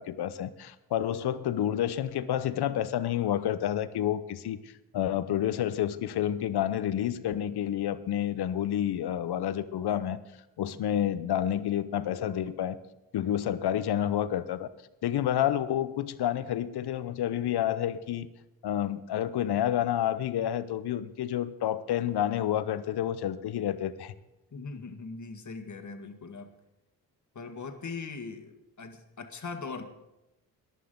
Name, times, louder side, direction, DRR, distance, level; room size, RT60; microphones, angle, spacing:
voice 1, 0.0-4.6 4.9-10.2 10.6-12.8 13.1-14.7 15.0-18.3 18.6-24.1, left 11 dB, 65° left, 14 dB, 0.9 m, -29 dB
voice 2, 24.5-26.5 27.3-29.9, left 4 dB, 40° left, 6 dB, 1.8 m, -40 dB
18.5 x 11.0 x 3.9 m, 0.94 s
supercardioid pair, 50°, 42 cm